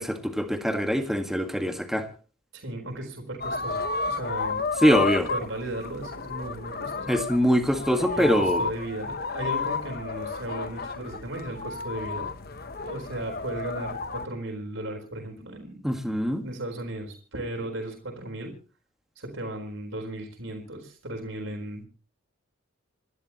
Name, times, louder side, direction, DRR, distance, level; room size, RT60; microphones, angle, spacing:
voice 1, 0.0-2.1 4.8-5.3 7.1-8.6 15.8-16.5, equal, ahead, 5 dB, 1.7 m, -23 dB
voice 2, 2.5-4.6 5.3-7.1 8.0-12.3 12.8-15.8 16.4-18.5 19.2-21.9, right 1 dB, 70° right, 3 dB, 4.2 m, -36 dB
sound 1, 3.4-14.3, left 4 dB, 45° left, 0.9 m, -32 dB
28.5 x 12.0 x 3.0 m, 0.38 s
head